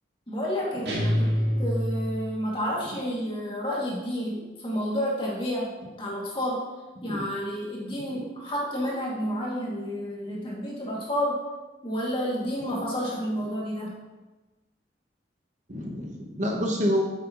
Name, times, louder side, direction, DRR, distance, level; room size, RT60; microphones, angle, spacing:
voice 1, 0.3-1.3 1.6-5.7 6.0-6.6 7.0-11.4 11.8-14.0, equal, 30° left, -4 dB, 2.3 m, -30 dB
sound 1, 0.8-2.6, equal, 65° right, 1.9 m, -26 dB
voice 2, 1.0-1.6 7.0-7.2 8.0-8.1 15.7-17.0, equal, 40° right, 1 dB, 1.0 m, -29 dB
9.2 x 7.7 x 3.0 m, 1.2 s
head